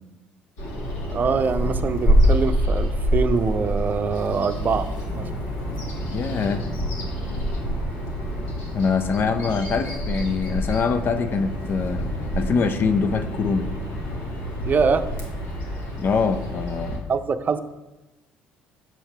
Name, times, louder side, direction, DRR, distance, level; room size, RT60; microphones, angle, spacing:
Bird vocalization bird call bird song, 0.6-17.0, equal, 70° left, 2.2 m, -26 dB
voice 1, 1.1-5.3 14.6-15.1 17.1-17.6, right 5 dB, 40° right, 9 dB, 0.6 m, -24 dB
voice 2, 6.1-6.7 8.7-12.1 12.4-13.7 16.0-17.0, left 5 dB, 50° left, 10 dB, 0.7 m, -24 dB
7.5 x 7.2 x 3.4 m, 1.0 s
hypercardioid pair, 55°, 5 cm